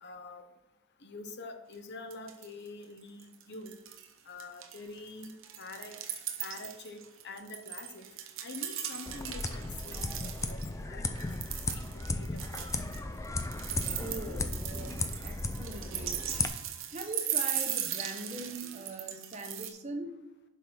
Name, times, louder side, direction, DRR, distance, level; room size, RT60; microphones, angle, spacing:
voice 1, 0.0-0.4 1.0-3.8 4.3-6.0 6.4-8.0 8.4-12.7, left 3 dB, 50° left, 7 dB, 0.9 m, -46 dB
sound 1, 1.7-1.8 2.1-2.7 3.0-4.1 4.4-10.7 11.1-19.7, right 10 dB, 60° right, 0.9 m, -38 dB
sound 2, 9.1-16.5, left 2 dB, 15° left, 0.4 m, -35 dB
voice 2, 14.0-16.2 16.9-20.2, right 2 dB, 30° right, 5 dB, 0.9 m, -41 dB
7.2 x 5.6 x 5.9 m, 0.88 s
head